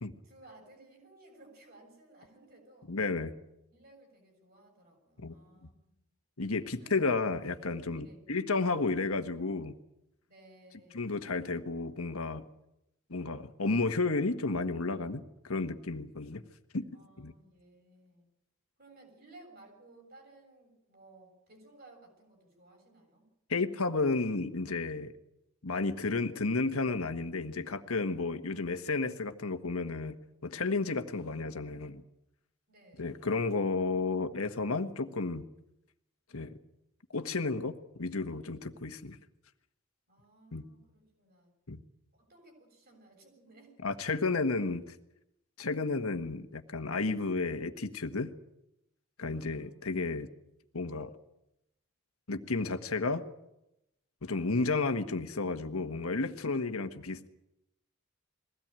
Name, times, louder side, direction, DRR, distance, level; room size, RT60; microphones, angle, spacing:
voice 1, 0.2-2.9 3.7-6.0 6.8-7.0 7.9-8.2 10.3-11.1 16.9-18.3 18.8-23.3 32.7-33.4 40.1-41.5 42.1-43.7 49.3-49.7 50.1-50.4, right 2 dB, 45° right, 3 dB, 7.1 m, -58 dB
voice 2, 2.9-3.3 5.2-5.3 5.6-5.7 6.4-9.7 10.9-12.4 13.1-16.4 16.7-16.9 17.2-17.3 23.5-25.1 25.6-32.0 33.0-35.5 36.3-36.6 37.1-39.2 40.5-40.6 41.7-41.8 43.8-44.9 45.6-48.3 49.2-50.3 50.7-51.1 52.3-53.2 54.2-57.3, left 3 dB, 85° left, 8 dB, 1.4 m, -32 dB
22.0 x 17.0 x 8.9 m, 0.87 s
head